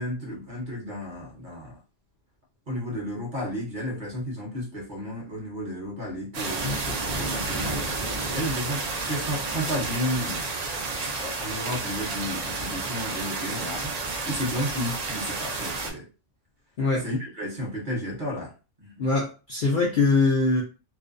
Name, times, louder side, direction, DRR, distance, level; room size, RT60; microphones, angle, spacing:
voice 1, 0.0-1.8 2.7-7.8 8.3-10.5 11.0-16.1 16.9-18.5 18.8-19.0, equal, 45° right, 0.9 m, -33 dB
sound 1, 6.3-15.9, right 3 dB, 65° right, 0.4 m, -31 dB
voice 2, 19.0-20.6, left 3 dB, 60° left, 0.5 m, -22 dB
2.5 x 2.1 x 2.5 m
omnidirectional pair, 1.3 m